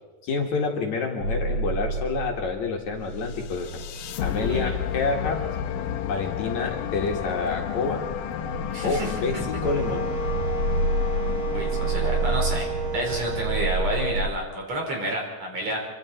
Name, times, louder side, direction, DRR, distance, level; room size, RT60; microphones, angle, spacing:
voice 1, 0.2-3.8 4.2-5.4 6.1-8.0 8.8-10.2, left 4 dB, 60° left, 1 dB, 3.1 m, -28 dB
sound 1, 1.2-14.3, right 2 dB, 80° right, 9.6 m, -30 dB
sound 2, 3.2-13.4, left 9 dB, 75° left, 2.6 m, -32 dB
voice 2, 4.4-4.7 8.7-9.1 11.5-15.9, right 1 dB, 50° right, 0 dB, 5.3 m, -30 dB
Wind instrument woodwind instrument, 9.6-14.3, right 4 dB, 30° right, 2.0 m, -32 dB
26.5 x 24.5 x 4.4 m, 1.2 s
omnidirectional pair, 4.0 m